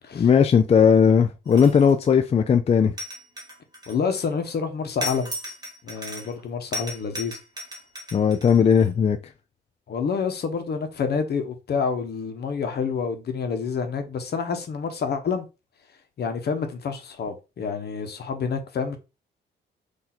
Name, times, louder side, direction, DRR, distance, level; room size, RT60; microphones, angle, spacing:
voice 1, 0.2-2.9 8.1-9.2, left 7 dB, 30° left, 0.4 m, -18 dB
sound 1, 1.5-2.1 3.0-4.3 5.0-6.4 6.7-8.9, left 1 dB, 20° right, 1.7 m, -35 dB
voice 2, 3.9-5.3 5.8-7.4 9.9-15.5 16.2-19.0, left 5 dB, 55° left, 1.0 m, -28 dB
3.9 x 2.7 x 4.3 m
cardioid pair, 90°, 20 cm